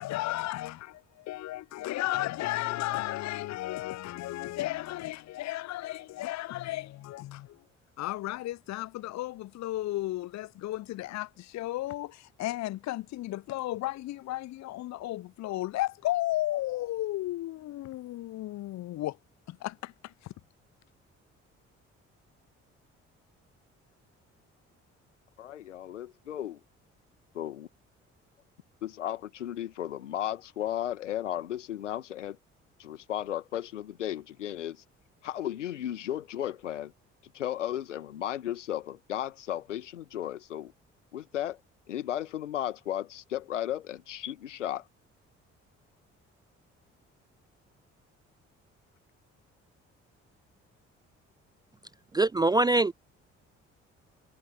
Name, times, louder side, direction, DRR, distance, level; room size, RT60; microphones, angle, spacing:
voice 1, 0.0-7.6 8.0-19.2 19.5-20.1, left 16 dB, 50° left, 0.8 m, -34 dB
voice 2, 25.4-26.6 27.3-27.7 28.8-32.4 32.8-34.8 35.2-36.9 37.3-40.7 41.1-41.6 41.9-44.9, left 11 dB, 80° left, 2.0 m, -34 dB
voice 3, 52.1-52.9, right 2 dB, 10° right, 0.3 m, -23 dB
figure-of-eight pair, 45°, 36 cm